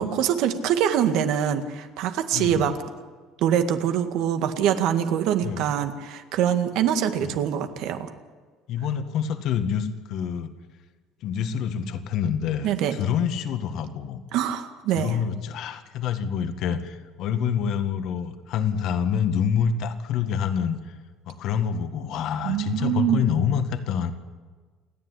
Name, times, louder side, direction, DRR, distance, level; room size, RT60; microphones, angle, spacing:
voice 1, 0.0-2.8 3.4-8.1 12.6-13.0 14.3-15.2 22.4-23.2, right 9 dB, 65° right, 8 dB, 2.0 m, -24 dB
voice 2, 2.3-2.8 5.4-5.7 7.2-7.4 8.7-10.5 11.2-14.2 15.0-20.9 21.3-24.1, left 7 dB, 60° left, 8 dB, 1.9 m, -27 dB
28.5 x 10.5 x 10.0 m, 1.4 s
cardioid pair, 135°, 0 cm